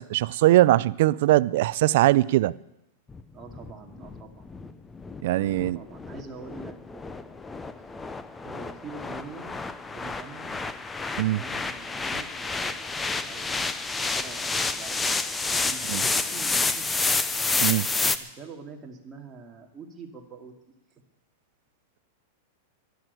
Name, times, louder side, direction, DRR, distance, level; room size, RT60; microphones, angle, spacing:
voice 1, 0.0-2.5 5.2-5.8 11.2-11.4 15.9-16.0 17.6-17.9, right 16 dB, 60° right, 0.4 m, -21 dB
sound 1, 3.1-18.2, left 3 dB, 10° left, 0.6 m, -29 dB
voice 2, 3.3-4.6 5.6-7.4 7.8-7.9 8.4-9.6 9.9-10.6 11.1-12.9 13.2-15.3 15.6-17.2 18.2-20.5, right 4 dB, 15° right, 2.3 m, -45 dB
12.5 x 11.5 x 9.4 m
supercardioid pair, 160°, 0 cm